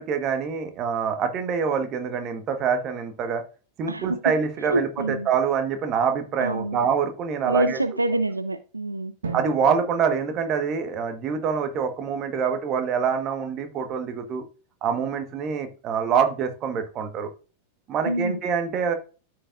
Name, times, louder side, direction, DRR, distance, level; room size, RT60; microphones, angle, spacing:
voice 1, 0.0-3.4 3.8-7.8 9.3-14.4 14.8-17.3 17.9-18.9, right 6 dB, 35° right, 1.3 m, -25 dB
voice 2, 3.9-4.2 4.6-5.3 6.4-6.8 7.4-9.1 18.1-18.4, right 1 dB, 85° right, 0.4 m, -26 dB
Drum, 9.2-11.7, right 4 dB, 65° right, 1.0 m, -39 dB
13.5 x 4.8 x 2.5 m
figure-of-eight pair, 90°, 0 cm